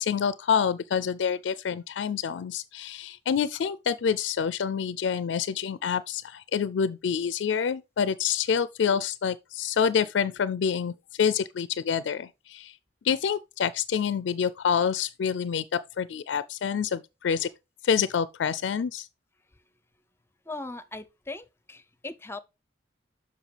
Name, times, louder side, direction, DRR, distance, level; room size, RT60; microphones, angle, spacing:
voice 1, 0.0-12.7 13.0-17.5 17.8-19.1, left 7 dB, 75° left, 0.4 m, -27 dB
voice 2, 20.5-21.8 22.0-22.4, left 2 dB, 15° left, 0.6 m, -38 dB
7.2 x 5.9 x 3.3 m
head